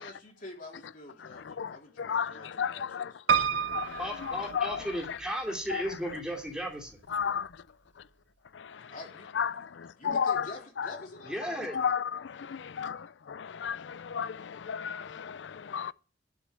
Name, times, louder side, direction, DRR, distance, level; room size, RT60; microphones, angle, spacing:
voice 1, 0.0-3.4 8.9-9.6 9.9-11.6, left 1 dB, 50° left, 3.6 m, -47 dB
voice 2, 1.3-5.2 5.7-5.8 7.1-7.6 8.5-8.9 9.3-10.9 11.7-15.9, left 7 dB, 80° left, 0.5 m, -34 dB
Piano, 3.3-5.3 5.9-6.6 6.9-7.0 7.2-7.3, right 7 dB, 70° right, 0.7 m, -30 dB
voice 3, 4.0-7.0 11.2-11.7, equal, 5° right, 2.7 m, -35 dB
11.5 x 6.0 x 7.6 m
head